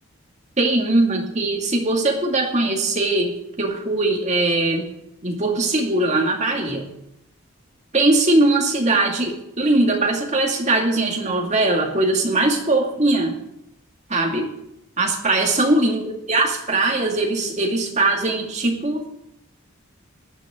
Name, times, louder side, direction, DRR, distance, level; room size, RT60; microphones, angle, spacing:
voice 1, 0.6-4.9 5.2-6.9 7.9-13.4 14.1-14.5 15.0-19.1, right 2 dB, 30° right, 1 dB, 2.2 m, -20 dB
17.5 x 11.5 x 3.7 m, 0.82 s
head